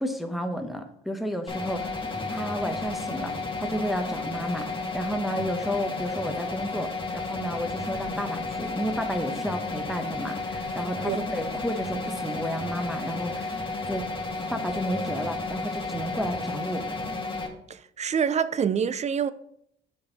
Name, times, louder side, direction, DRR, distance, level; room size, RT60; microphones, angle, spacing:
voice 1, 0.0-2.0 2.3-13.6 13.9-14.1 14.5-16.8, equal, ahead, 0.8 m, -32 dB
sound 1, 1.5-17.5, left 3 dB, 25° left, 1.5 m, -32 dB
voice 2, 17.7-19.3, right 7 dB, 35° right, 0.4 m, -26 dB
6.8 x 5.3 x 4.0 m
cardioid pair, 90°, 20 cm